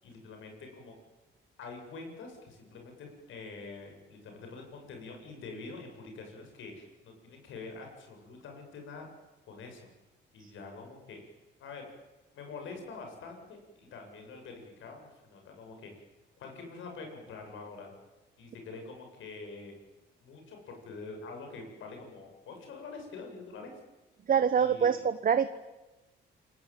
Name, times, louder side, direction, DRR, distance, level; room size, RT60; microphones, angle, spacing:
voice 1, 0.0-0.9 1.6-9.1 9.5-9.9 10.3-11.2 11.6-11.9 12.3-15.9 16.4-17.9 18.4-19.7 20.2-23.7 24.6-25.0, left 4 dB, 80° left, 3 dB, 7.8 m, -45 dB
voice 2, 24.3-25.5, right 7 dB, 45° right, 11 dB, 1.2 m, -25 dB
28.5 x 19.5 x 9.2 m, 1.1 s
cardioid pair, 90°, 20 cm